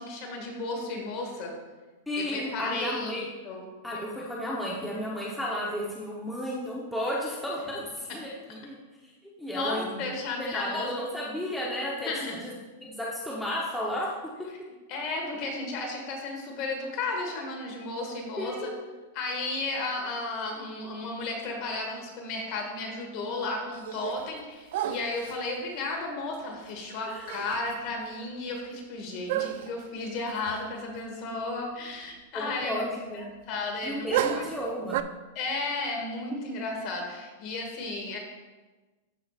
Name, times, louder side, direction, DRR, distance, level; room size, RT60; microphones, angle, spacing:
voice 1, 0.0-1.5 2.2-3.6 8.1-8.2 9.5-10.9 12.0-12.5 14.9-18.7 19.1-32.9 33.1-34.5 35.4-38.2, left 3 dB, 40° left, 1 dB, 1.8 m, -34 dB
voice 2, 2.1-3.3 3.8-8.8 9.4-10.0 10.4-12.5 12.8-14.1 18.4-18.7 27.1-27.3 32.3-33.3 33.8-35.0, left 1 dB, ahead, -6 dB, 0.9 m, -33 dB
sound 1, 23.7-24.4 24.7-25.5 26.9-27.0 27.3-27.8 28.1-28.2 29.3-29.8 30.5-30.7 31.0-31.1 34.1-35.0, right 12 dB, 60° right, 0.3 m, -32 dB
13.0 x 4.9 x 2.4 m, 1.2 s
supercardioid pair, 150°, 0 cm